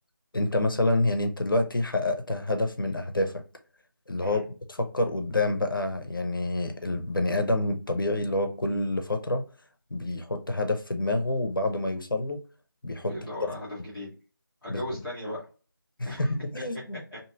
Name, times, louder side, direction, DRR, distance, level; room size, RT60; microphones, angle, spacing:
voice 1, 0.3-3.4 4.1-9.5 9.9-12.4 12.8-13.1 14.7-14.8 16.0-17.0, left 2 dB, 70° left, 0.6 m, -27 dB
voice 2, 13.1-14.1 14.6-15.4 16.0-16.3 17.1-17.2, left 1 dB, ahead, 0.5 m, -37 dB
3.0 x 2.6 x 2.4 m
figure-of-eight pair, 160°, 12 cm